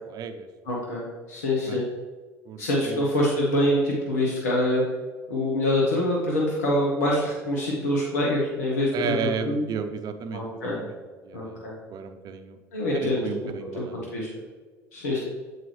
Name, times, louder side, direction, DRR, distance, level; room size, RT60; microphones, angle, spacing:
voice 1, 0.1-0.5 1.7-1.8 2.5-3.1 8.9-11.0 11.2-12.6 12.9-14.0, right 7 dB, 50° right, 9 dB, 0.6 m, -34 dB
voice 2, 0.7-1.8 2.6-4.8 5.3-9.6 10.3-10.8 11.3-11.7 12.7-13.3 13.7-14.3 14.9-15.2, left 1 dB, 85° left, -4 dB, 1.2 m, -25 dB
7.6 x 4.7 x 3.2 m, 1.4 s
hypercardioid pair, 70°, 9 cm